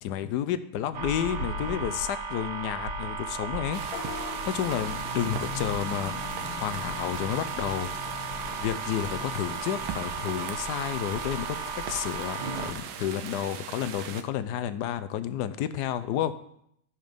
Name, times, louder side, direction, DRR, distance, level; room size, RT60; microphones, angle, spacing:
voice 1, 0.0-3.8 4.1-6.1 6.6-7.9 8.6-16.3, left 10 dB, 70° left, 13 dB, 1.0 m, -31 dB
sound 1, 0.9-12.7, right 4 dB, 60° right, 1.6 m, -35 dB
sound 2, 3.7-14.2, right 8 dB, 85° right, 1.6 m, -40 dB
Vehicle horn car horn honking / Bus, 3.8-9.9, left 7 dB, 85° left, 1.7 m, -41 dB
13.0 x 5.7 x 5.2 m, 0.73 s
omnidirectional pair, 2.2 m